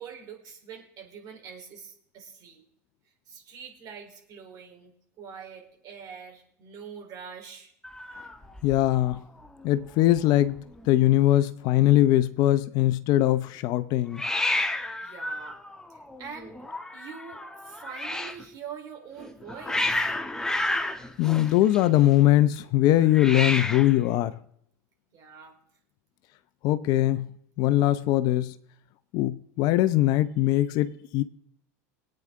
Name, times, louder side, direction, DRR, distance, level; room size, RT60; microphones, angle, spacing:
voice 1, 0.0-2.6 3.3-7.7 8.0-8.3 15.0-15.6 15.9-16.5 16.9-20.1 25.1-25.6, right 7 dB, 45° right, 3.8 m, -44 dB
Hiss, 7.8-9.2 9.4-9.9 10.2-10.3 10.4-11.1 14.1-18.4 19.2-22.1 23.1-24.0, left 2 dB, 5° left, 1.3 m, -31 dB
voice 2, 8.6-9.2 9.6-10.5 10.9-14.2 21.2-24.3 26.6-27.3 27.6-28.5 29.1-31.2, left 14 dB, 55° left, 0.7 m, -21 dB
22.0 x 9.0 x 3.7 m
hypercardioid pair, 85°, 8 cm